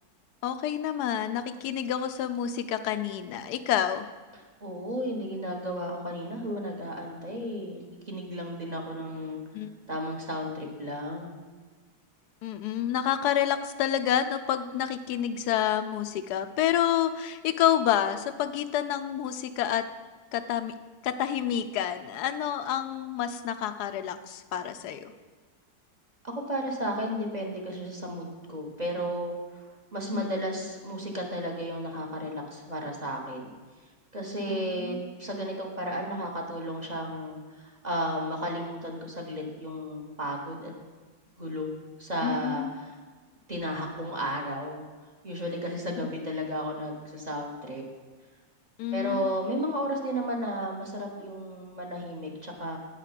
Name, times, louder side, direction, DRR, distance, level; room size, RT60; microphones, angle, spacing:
voice 1, 0.4-4.0 9.5-9.7 12.4-19.8 20.3-20.7 21.0-25.1 30.1-30.6 34.5-35.0 42.2-42.7 48.8-49.3, left 10 dB, 85° left, 10 dB, 1.2 m, -28 dB
voice 2, 4.6-7.8 8.1-9.4 9.9-11.4 26.2-29.6 29.9-33.5 34.1-40.7 41.4-41.7 42.0-42.9 43.5-44.8 45.2-47.8 48.9-52.8, equal, 30° right, 0 dB, 1.1 m, -33 dB
8.9 x 6.6 x 5.8 m, 1.4 s
omnidirectional pair, 1.7 m